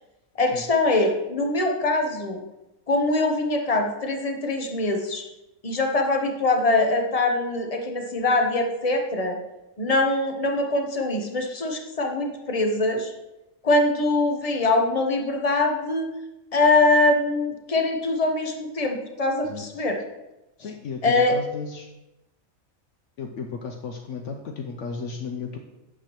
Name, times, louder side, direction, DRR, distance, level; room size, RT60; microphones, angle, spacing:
voice 1, 0.4-2.4 2.9-5.2 5.6-9.4 9.8-13.1 13.6-16.1 16.5-20.0 21.0-21.4, left 2 dB, 35° left, 3 dB, 0.7 m, -23 dB
voice 2, 19.4-19.9 20.6-21.9 23.2-25.6, left 5 dB, 65° left, 3 dB, 0.9 m, -34 dB
8.3 x 6.6 x 3.0 m, 0.97 s
omnidirectional pair, 1.4 m